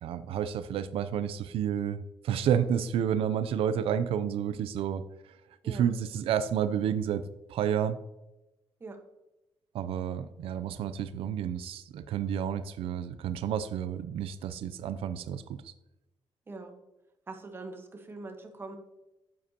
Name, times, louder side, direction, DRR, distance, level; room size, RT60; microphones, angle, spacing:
voice 1, 0.0-8.0 9.7-15.7, right 9 dB, 85° right, 12 dB, 0.4 m, -30 dB
voice 2, 16.5-16.8 17.3-18.8, right 3 dB, 25° right, 4 dB, 1.2 m, -42 dB
9.6 x 7.7 x 2.8 m, 0.96 s
cardioid pair, 140°, 9 cm